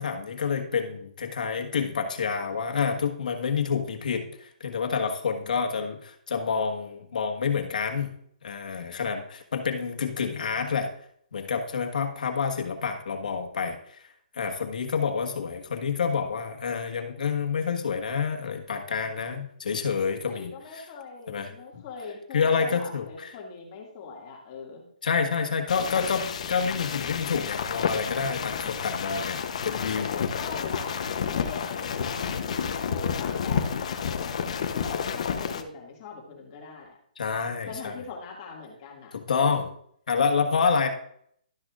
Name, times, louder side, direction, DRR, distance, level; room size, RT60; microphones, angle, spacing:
voice 1, 0.0-8.1 8.4-10.9 11.3-14.0 14.3-20.9 21.3-21.8 22.3-23.3 25.0-30.3 37.2-38.0 39.1-39.7 40.1-40.9, left 5 dB, 70° left, 4 dB, 1.5 m, -28 dB
voice 2, 5.4-5.9 20.3-24.8 30.3-31.0 31.3-34.0 34.7-37.0 37.7-39.6, left 4 dB, 30° left, -1 dB, 2.1 m, -41 dB
sound 1, 25.7-35.6, left 7 dB, 50° left, 0.8 m, -30 dB
12.0 x 6.2 x 2.5 m, 0.65 s
hypercardioid pair, 165°, 5 cm